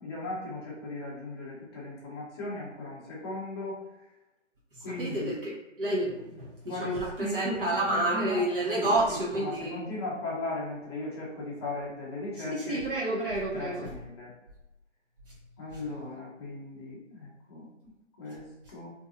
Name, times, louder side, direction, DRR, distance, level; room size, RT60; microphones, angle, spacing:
voice 1, 0.0-3.8 4.8-5.4 6.6-8.4 8.7-12.8 13.5-14.3 15.6-17.7 18.2-18.9, left 2 dB, 20° left, -6 dB, 0.6 m, -37 dB
voice 2, 5.0-5.5 5.8-6.3 6.8-7.1 7.3-9.8 12.5-13.9, right 1 dB, 45° right, -6 dB, 0.8 m, -29 dB
2.6 x 2.3 x 2.6 m, 0.98 s
figure-of-eight pair, 145°, 37 cm